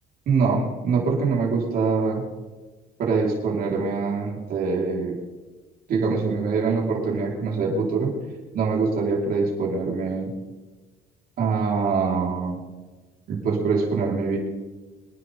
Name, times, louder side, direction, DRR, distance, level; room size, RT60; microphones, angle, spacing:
voice 1, 0.3-2.2 3.0-5.1 5.9-8.1 8.5-10.3 11.4-12.6 13.3-14.4, right 4 dB, 60° right, -3 dB, 4.5 m, -24 dB
25.0 x 10.5 x 3.8 m, 1.2 s
cardioid pair, 110°, 17 cm